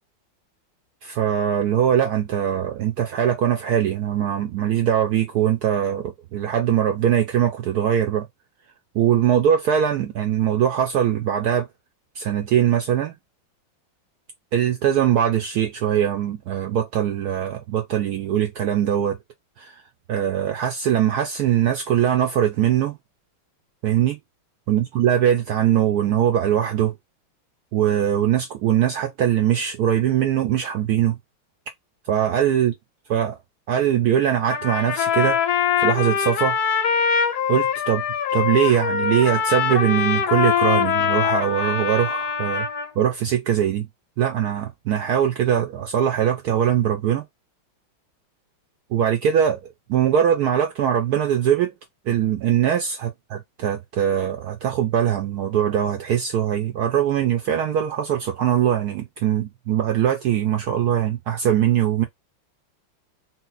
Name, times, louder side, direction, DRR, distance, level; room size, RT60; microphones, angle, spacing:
voice 1, 1.0-8.3 8.9-11.7 12.2-13.1 14.5-19.2 19.6-19.8 20.1-22.9 23.8-24.2 24.7-26.9 27.7-31.2 32.1-32.7 33.1-33.4 33.7-35.4 35.8-36.6 37.5-38.0 38.3-42.7 43.0-43.9 44.2-47.2 48.9-49.6 49.9-51.7 52.1-62.0, right 9 dB, 80° right, 0.8 m, -21 dB
Trumpet, 34.5-42.9, left 8 dB, 60° left, 1.1 m, -23 dB
4.0 x 2.0 x 3.8 m
omnidirectional pair, 2.3 m